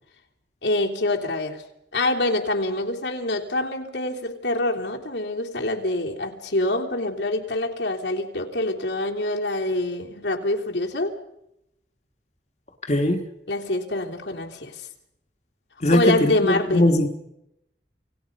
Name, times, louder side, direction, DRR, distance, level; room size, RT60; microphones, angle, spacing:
voice 1, 0.6-1.6 1.9-11.1 13.5-14.8 15.9-16.9, left 2 dB, 90° left, 0 dB, 3.3 m, -25 dB
voice 2, 12.9-13.2 15.8-17.1, left 1 dB, 40° left, 4 dB, 1.5 m, -20 dB
28.5 x 18.5 x 5.3 m, 0.81 s
head